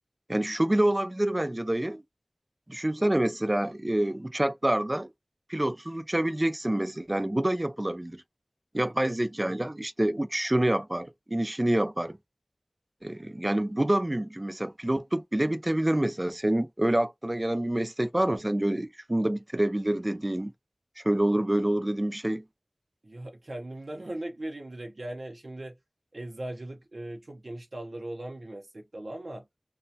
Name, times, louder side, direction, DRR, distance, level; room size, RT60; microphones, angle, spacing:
voice 1, 0.3-2.0 2.7-5.1 5.5-8.2 8.7-12.2 13.0-20.5 21.0-22.4, right 1 dB, 30° right, 0.4 m, -27 dB
voice 2, 8.8-9.2 9.5-9.6 23.0-25.7 26.1-29.5, right 1 dB, 80° right, 0.6 m, -39 dB
3.1 x 2.1 x 2.7 m
wide cardioid pair, 50°, 0 cm